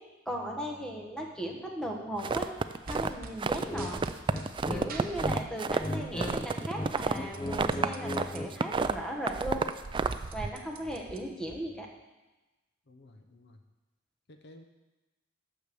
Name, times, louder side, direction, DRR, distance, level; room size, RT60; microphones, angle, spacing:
voice 1, 0.2-2.5 2.9-4.1 4.7-9.6 10.3-11.9, right 1 dB, 5° left, 0 dB, 1.3 m, -37 dB
sound 1, 2.2-3.7 3.9-8.3 8.5-10.5, right 4 dB, 25° right, 0.3 m, -30 dB
sound 2, 2.8-4.5 4.9-6.0 6.3-8.4 8.8-8.9 9.1-11.6, right 4 dB, 45° right, 1.0 m, -47 dB
sound 3, 3.7-3.9 4.3-5.4 5.7-6.3 6.6-8.5, left 1 dB, 20° left, 0.8 m, -35 dB
voice 2, 12.9-13.6 14.3-14.6, left 1 dB, 60° left, 6 dB, 0.8 m, -55 dB
9.7 x 6.6 x 6.9 m, 1.1 s
head